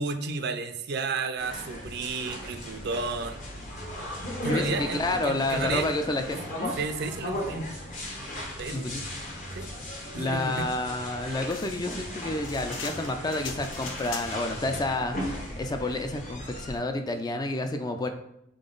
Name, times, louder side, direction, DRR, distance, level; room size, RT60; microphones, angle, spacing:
voice 1, 0.0-3.4 4.4-5.9 6.8-7.7 8.6-8.8 9.5-9.7 10.1-10.7, right 4 dB, 60° right, 8 dB, 0.4 m, -32 dB
sound 1, 1.4-16.8, left 1 dB, 45° left, 0.9 m, -37 dB
voice 2, 4.4-6.7 8.7-9.0 10.2-15.2 15.6-18.1, left 2 dB, 20° left, 6 dB, 0.3 m, -30 dB
sound 2, 11.4-14.6, left 5 dB, 75° left, 0.6 m, -41 dB
3.7 x 3.4 x 3.8 m, 0.80 s
head